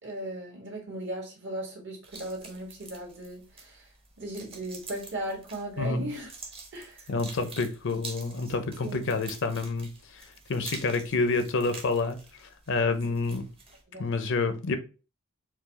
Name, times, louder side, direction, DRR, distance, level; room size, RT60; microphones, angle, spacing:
voice 1, 0.0-3.9 4.2-6.3 6.7-7.1 8.8-9.1 13.9-14.1, right 1 dB, 55° right, 1.8 m, -37 dB
sound 1, 2.0-13.8, right 3 dB, 25° right, 0.9 m, -47 dB
voice 2, 5.8-6.1 7.1-13.4 14.0-14.8, left 3 dB, 60° left, 0.6 m, -28 dB
4.6 x 2.4 x 4.0 m
head